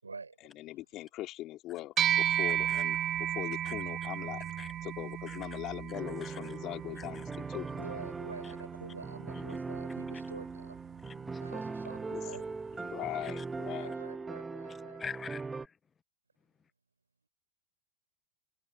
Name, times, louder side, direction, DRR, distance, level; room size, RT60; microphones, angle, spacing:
voice 1, 0.0-0.6 3.7-3.8 7.6-10.8 11.4-12.6 13.7-15.0, right 4 dB, 80° right, 6.3 m, -47 dB
voice 2, 0.6-4.4 4.8-7.7 9.3-9.6 12.1-12.2 12.7-14.0, left 16 dB, 35° left, 4.3 m, -41 dB
sound 1, 2.0-11.6, right 11 dB, 30° right, 0.5 m, -35 dB
sound 2, 5.9-15.7, right 4 dB, 10° right, 1.5 m, -40 dB
voice 3, 15.0-15.4, left 6 dB, 20° left, 0.7 m, -41 dB
figure-of-eight pair, 90°, 0 cm